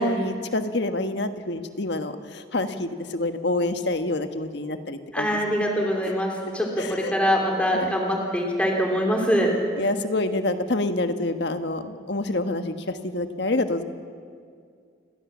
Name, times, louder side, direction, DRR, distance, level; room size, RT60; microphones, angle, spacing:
voice 1, 0.0-5.3 6.8-7.1 7.7-7.9 9.8-13.8, left 2 dB, 60° left, 8 dB, 1.5 m, -27 dB
voice 2, 5.1-9.5, equal, 5° left, 0 dB, 3.3 m, -24 dB
29.0 x 21.0 x 7.4 m, 2.2 s
head